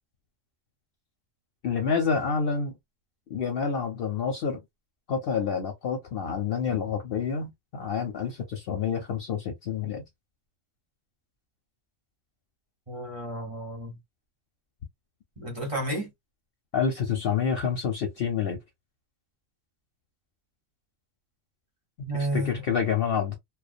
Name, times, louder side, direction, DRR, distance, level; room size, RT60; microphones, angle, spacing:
voice 1, 1.6-2.8 3.3-4.6 5.1-10.0 16.7-18.6 22.0-23.4, left 6 dB, 60° left, 0.7 m, -28 dB
voice 2, 12.9-14.0 15.4-16.1 22.1-22.6, right 1 dB, 30° right, 0.9 m, -31 dB
2.2 x 2.2 x 2.5 m
omnidirectional pair, 1.3 m